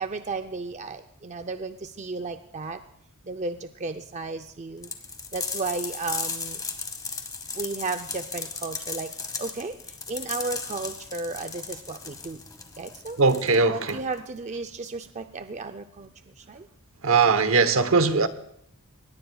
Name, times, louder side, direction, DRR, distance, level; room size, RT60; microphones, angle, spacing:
voice 1, 0.0-2.8 3.2-4.9 5.3-6.6 7.5-9.1 9.4-12.4 12.8-13.2 13.7-16.1 16.4-16.7, right 3 dB, 35° right, 0.5 m, -34 dB
sound 1, 4.8-14.2, left 4 dB, 15° left, 1.3 m, -36 dB
voice 2, 13.2-14.0 17.0-18.3, right 4 dB, 65° right, 1.0 m, -20 dB
22.0 x 19.5 x 2.3 m
head